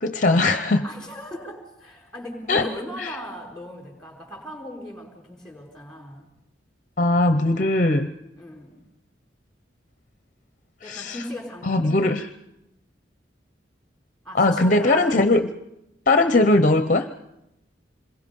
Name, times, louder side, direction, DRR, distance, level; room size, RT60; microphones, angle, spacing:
voice 1, 0.0-0.8 2.5-2.7 3.0-3.2 7.0-8.1 10.9-11.2 11.6-12.3 14.3-15.5 16.1-17.1, left 2 dB, 40° left, 9 dB, 0.7 m, -19 dB
voice 2, 0.8-6.3 8.4-8.8 10.8-12.0 14.2-15.4, equal, 5° left, 0 dB, 4.9 m, -38 dB
27.0 x 22.0 x 5.3 m, 0.88 s
head